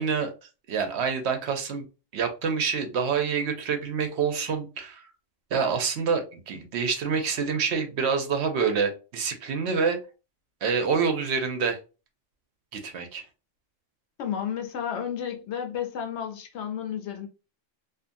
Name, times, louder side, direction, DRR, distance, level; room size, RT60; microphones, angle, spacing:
voice 1, 0.0-1.9 2.1-5.0 5.5-10.0 10.6-11.8 12.7-13.2, right 5 dB, 70° right, 0.8 m, -27 dB
voice 2, 14.2-17.3, left 8 dB, 70° left, 0.9 m, -32 dB
2.5 x 2.5 x 2.5 m
omnidirectional pair, 1.2 m